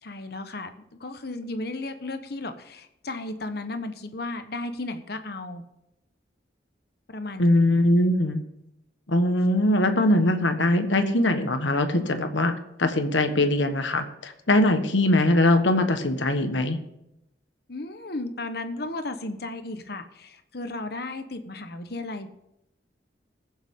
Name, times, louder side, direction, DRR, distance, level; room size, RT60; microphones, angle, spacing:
voice 1, 0.0-0.7 1.0-5.6 7.1-7.4 17.7-22.3, left 2 dB, 55° left, 8 dB, 1.1 m, -34 dB
voice 2, 7.4-8.4 9.1-12.5 12.8-16.8, left 1 dB, 85° left, 7 dB, 1.3 m, -21 dB
21.0 x 7.1 x 3.7 m, 0.85 s
head